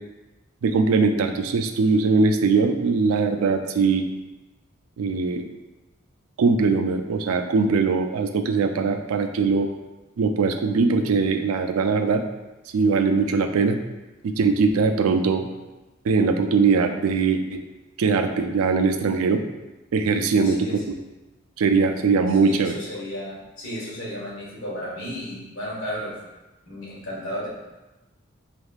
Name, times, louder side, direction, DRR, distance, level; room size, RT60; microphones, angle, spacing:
voice 1, 0.6-4.1 5.0-5.4 6.4-9.7 10.2-12.2 12.7-13.8 14.2-15.4 16.0-17.6 18.0-19.4 19.9-21.0 21.6-22.8, right 4 dB, 85° right, 7 dB, 0.4 m, -21 dB
voice 2, 20.4-20.8 22.4-26.2 26.7-27.5, equal, 65° left, -6 dB, 1.4 m, -34 dB
4.3 x 3.4 x 2.3 m, 1.1 s
head